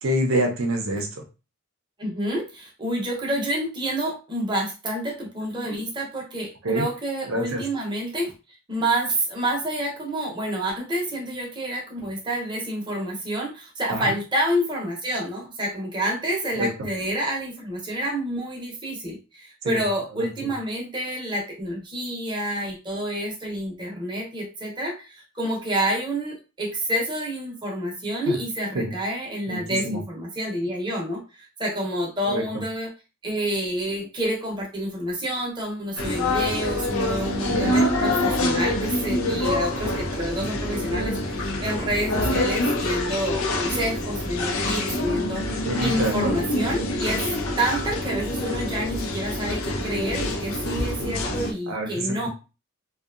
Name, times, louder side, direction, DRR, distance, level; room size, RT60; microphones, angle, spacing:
voice 1, 0.0-1.2 6.6-6.9 7.3-7.6 13.9-14.0 16.5-16.7 19.6-19.8 20.2-20.3 28.3-28.4 28.7-28.9 29.5-29.6 29.8-30.0 32.3-32.5 37.5-37.7 45.6-46.4 51.0-51.2 51.7-52.3, right 1 dB, 75° right, 2 dB, 0.6 m, -26 dB
voice 2, 2.0-8.3 8.7-32.9 33.2-45.4 45.8-47.2 47.6-52.3, right 1 dB, 20° right, -2 dB, 0.7 m, -28 dB
sound 1, 36.0-51.5, left 1 dB, 80° left, 0.5 m, -26 dB
2.7 x 2.2 x 2.4 m, 0.31 s
head